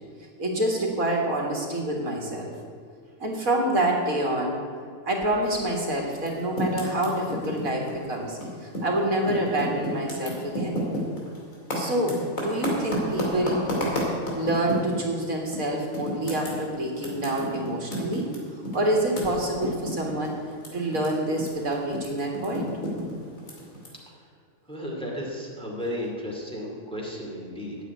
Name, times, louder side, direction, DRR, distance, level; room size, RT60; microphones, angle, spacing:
voice 1, 0.4-2.5 3.2-4.6 5.0-10.8 11.7-13.6 14.3-18.3 18.7-20.3 20.7-22.7, right 1 dB, 80° right, 0 dB, 2.2 m, -27 dB
Typing, 6.2-9.0 9.2-15.1 15.5-15.6 15.9-21.1 21.3-23.9, left 1 dB, 70° left, 3.0 m, -31 dB
voice 2, 24.7-27.8, left 1 dB, 5° left, -3 dB, 2.4 m, -34 dB
8.5 x 8.3 x 9.2 m, 2.2 s
omnidirectional pair, 1.4 m